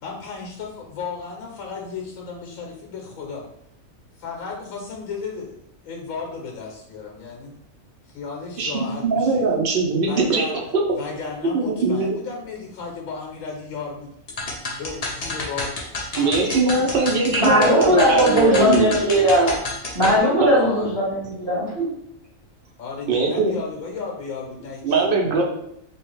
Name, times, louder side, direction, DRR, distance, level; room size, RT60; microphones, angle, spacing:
voice 1, 0.0-3.5 4.2-7.5 8.1-9.5 10.0-14.1 14.8-19.4 20.5-20.9 22.8-25.0, left 4 dB, 80° left, 0 dB, 1.0 m, -34 dB
voice 2, 8.6-10.4 10.7-10.8 11.4-12.1 16.2-19.0 20.4-20.5 23.1-23.5 24.8-25.4, right 3 dB, 55° right, 0 dB, 0.6 m, -21 dB
sound 1, 14.3-20.2, left 2 dB, 60° left, 0.4 m, -29 dB
voice 3, 17.3-21.9, equal, 20° right, -9 dB, 1.2 m, -19 dB
2.9 x 2.3 x 3.0 m, 0.76 s
omnidirectional pair, 1.4 m